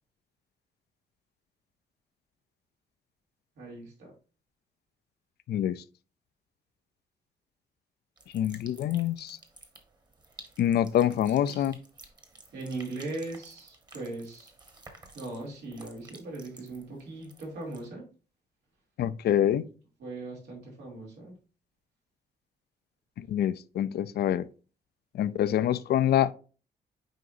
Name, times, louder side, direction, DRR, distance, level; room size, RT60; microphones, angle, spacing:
voice 1, 3.6-4.1 11.5-11.6 12.5-14.5 15.1-18.1 20.0-21.3, right 2 dB, 90° right, 2.8 m, -39 dB
voice 2, 5.5-5.8 8.3-9.4 10.6-11.8 19.0-19.7 23.2-24.5 25.1-26.3, left 11 dB, 70° left, 0.5 m, -26 dB
sound 1, 8.2-17.9, right 2 dB, 25° right, 1.2 m, -53 dB
7.7 x 4.9 x 2.6 m
cardioid pair, 130°, 17 cm